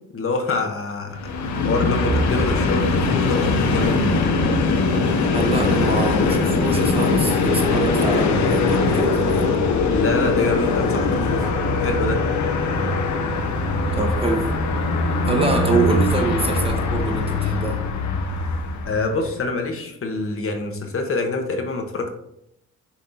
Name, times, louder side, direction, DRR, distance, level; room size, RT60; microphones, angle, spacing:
voice 1, 0.1-4.0 9.9-12.2 18.8-22.1, left 3 dB, 45° left, 4 dB, 1.2 m, -26 dB
Train, 1.1-19.3, left 3 dB, 65° left, 1.1 m, -21 dB
voice 2, 5.3-9.5 13.9-14.5 15.3-17.8, right 2 dB, 20° right, 2 dB, 1.4 m, -24 dB
7.2 x 4.2 x 4.1 m, 0.76 s
cardioid pair, 90°, 30 cm